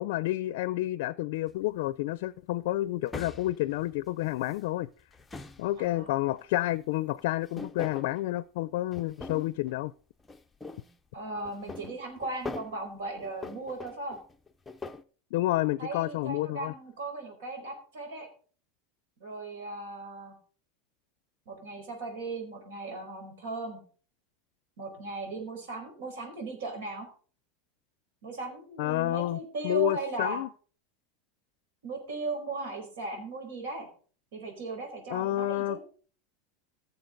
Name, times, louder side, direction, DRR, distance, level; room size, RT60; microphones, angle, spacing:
voice 1, 0.0-4.9 5.6-9.9 15.3-16.7 28.8-29.4 29.6-30.5 35.1-35.8, left 16 dB, 65° left, 0.4 m, -29 dB
sound 1, 1.5-1.7 3.1-4.6 5.0-6.1 7.2-8.2 8.9-9.8 10.2-11.0 11.5-12.8 13.2-15.0, left 3 dB, 5° left, 0.5 m, -42 dB
voice 2, 5.8-6.2 11.1-14.2 15.8-18.3 19.2-20.3 21.5-23.8 24.8-27.1 28.2-30.4 31.8-33.9 34.3-35.8, right 2 dB, 90° right, 4.8 m, -37 dB
16.0 x 7.0 x 3.9 m
supercardioid pair, 160°, 0 cm